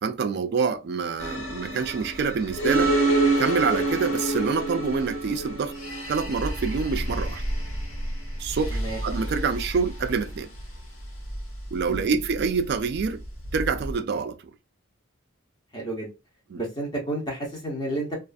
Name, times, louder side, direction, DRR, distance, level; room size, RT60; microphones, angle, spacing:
voice 1, 0.0-2.9 3.4-5.7 6.1-7.4 8.4-10.5 11.7-13.2 13.5-14.4 16.5-16.6, right 5 dB, 50° right, 0.3 m, -26 dB
sound 1, 1.2-14.0, right 2 dB, 85° left, 1.1 m, -28 dB
voice 2, 15.7-16.1 16.5-18.2, right 1 dB, 20° left, 0.7 m, -31 dB
2.4 x 2.4 x 2.4 m
head